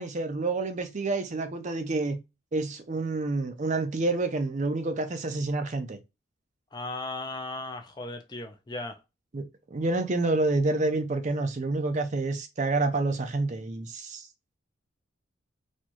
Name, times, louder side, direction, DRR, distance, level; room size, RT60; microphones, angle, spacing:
voice 1, 0.0-2.2 2.5-6.0 9.3-9.4 9.7-14.2, right 2 dB, 35° right, 0.5 m, -28 dB
voice 2, 6.7-9.0, left 2 dB, 20° left, 0.4 m, -36 dB
4.2 x 2.3 x 2.9 m
head